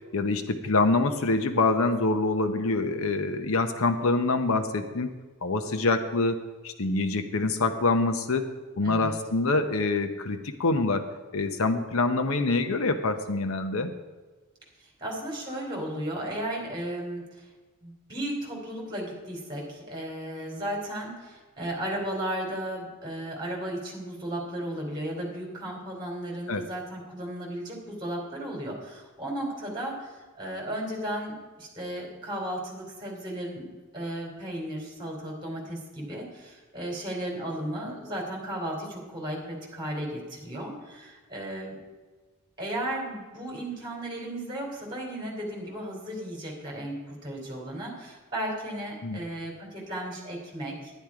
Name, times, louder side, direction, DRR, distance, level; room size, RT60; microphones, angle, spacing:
voice 1, 0.1-5.1 5.4-6.4 6.6-8.4 8.8-11.0 11.3-13.9 26.5-26.6 49.0-49.2, left 3 dB, 65° left, 8 dB, 0.8 m, -25 dB
voice 2, 8.8-9.1 14.8-17.5 17.8-41.8 42.6-50.9, right 1 dB, 20° right, -1 dB, 3.2 m, -35 dB
11.0 x 10.5 x 4.8 m, 1.3 s
head